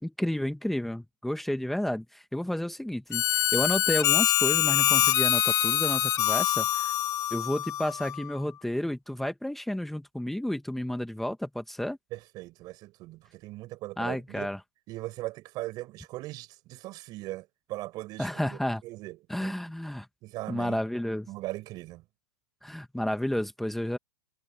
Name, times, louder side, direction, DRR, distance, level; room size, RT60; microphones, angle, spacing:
voice 1, 0.0-6.9 7.3-12.0 14.0-14.6 18.2-18.8 19.3-20.1 20.5-21.3 22.6-24.0, left 1 dB, ahead, 1.6 m, -31 dB
Harmonica, 3.1-8.3, left 12 dB, 25° left, 1.1 m, -25 dB
voice 2, 12.1-14.5 14.9-19.5 20.2-20.8 21.3-22.0, right 18 dB, 35° right, 5.7 m, -39 dB
hypercardioid pair, 145°, 12 cm